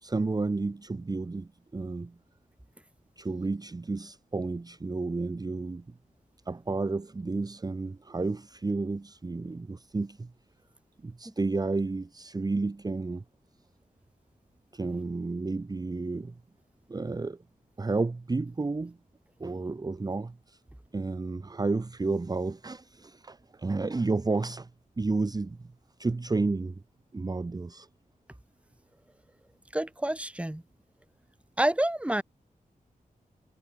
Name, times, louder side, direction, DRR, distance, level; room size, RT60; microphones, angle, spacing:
voice 1, 0.0-2.2 3.2-5.9 6.5-10.3 11.0-13.2 14.7-16.4 16.9-17.4 17.8-19.0 19.4-20.6 20.9-24.7 25.0-25.7 26.0-26.8 27.1-27.9, right 3 dB, 25° right, 1.0 m, -31 dB
voice 2, 29.7-30.6 31.6-32.2, right 1 dB, 10° right, 2.1 m, -28 dB
wide cardioid pair, 120°, 15 cm